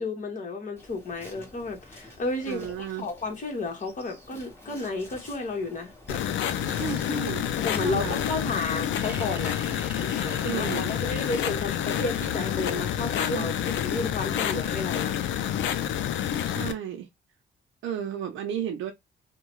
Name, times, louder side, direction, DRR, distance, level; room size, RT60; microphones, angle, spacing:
voice 1, 0.0-6.2 7.6-9.6 10.0-15.2, left 3 dB, 40° left, 1.2 m, -32 dB
Insect, 0.8-8.4, left 1 dB, 10° left, 1.4 m, -49 dB
voice 2, 2.5-3.1 6.7-7.5 7.8-8.2 10.4-11.0 13.3-13.5 16.4-17.1 17.8-18.9, right 9 dB, 80° right, 0.6 m, -33 dB
sound 1, 6.1-16.7, left 10 dB, 70° left, 0.5 m, -28 dB
sound 2, 9.0-12.7 14.4-14.5, right 1 dB, 10° right, 0.6 m, -44 dB
2.7 x 2.2 x 3.0 m
cardioid pair, 90°, 20 cm